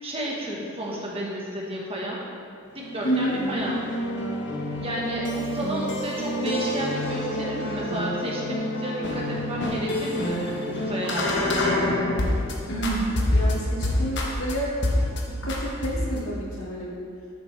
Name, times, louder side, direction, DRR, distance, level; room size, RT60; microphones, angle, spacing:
voice 1, 0.0-2.2 2.7-3.8 4.8-10.4 10.7-11.7, equal, 25° right, -4 dB, 1.5 m, -32 dB
sound 1, 2.8-12.5 12.8-14.5 14.8-15.2 15.5-16.3, left 1 dB, 55° left, 1.3 m, -27 dB
voice 2, 3.0-3.8 12.7-14.7 15.3-17.0, right 1 dB, 80° left, -5 dB, 2.3 m, -29 dB
10.5 x 8.3 x 3.4 m, 2.3 s
head